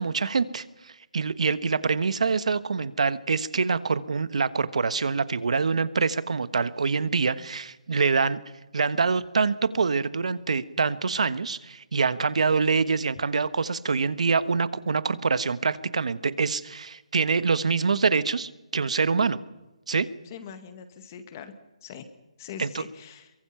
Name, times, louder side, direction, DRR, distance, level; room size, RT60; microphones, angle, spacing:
voice 1, 0.0-8.4 8.7-19.4 19.9-20.1 22.6-22.8, right 5 dB, 65° right, 13 dB, 1.4 m, -25 dB
voice 2, 20.3-21.5 21.8-22.0 22.4-23.3, left 7 dB, 25° left, 9 dB, 1.9 m, -42 dB
23.5 x 22.0 x 5.8 m, 1.0 s
hypercardioid pair, 165°, 4 cm